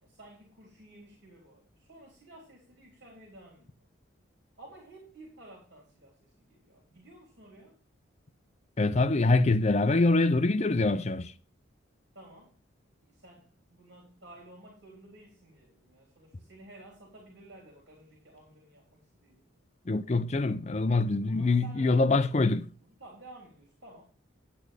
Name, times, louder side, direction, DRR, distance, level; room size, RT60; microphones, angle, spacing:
voice 1, 0.0-3.9 4.6-7.8 12.1-12.6 13.0-19.6 21.3-24.0, right 1 dB, 55° right, 3.6 m, -53 dB
voice 2, 8.8-11.3 19.9-22.6, left 3 dB, 35° left, 0.5 m, -24 dB
10.5 x 8.6 x 3.3 m
head